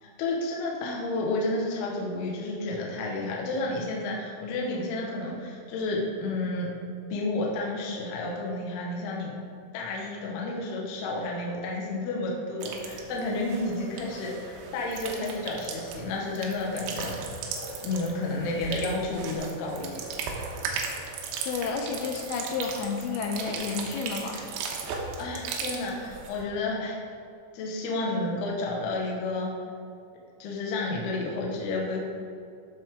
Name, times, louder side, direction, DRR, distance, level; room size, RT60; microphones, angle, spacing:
voice 1, 0.0-6.7 7.1-9.3 9.7-17.4 17.8-20.0 25.2-27.0 27.5-29.5 30.4-32.0, left 2 dB, 65° left, -2 dB, 2.9 m, -31 dB
sound 1, 12.6-26.4, right 5 dB, 90° right, 3.9 m, -37 dB
voice 2, 21.5-24.5, left 5 dB, 90° left, 2 dB, 2.5 m, -31 dB
15.0 x 6.9 x 3.7 m, 2.5 s
omnidirectional pair, 6.0 m